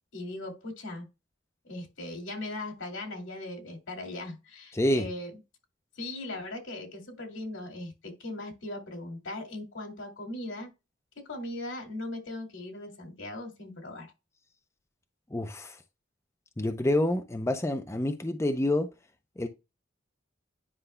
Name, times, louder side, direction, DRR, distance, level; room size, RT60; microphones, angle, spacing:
voice 1, 0.1-1.0 1.6-5.3 6.0-10.7 11.2-14.1, left 2 dB, 85° left, 2.5 m, -39 dB
voice 2, 4.7-5.1 15.3-15.8 16.6-18.9 19.4-19.5, left 1 dB, 15° left, 0.5 m, -27 dB
9.9 x 5.4 x 2.2 m
head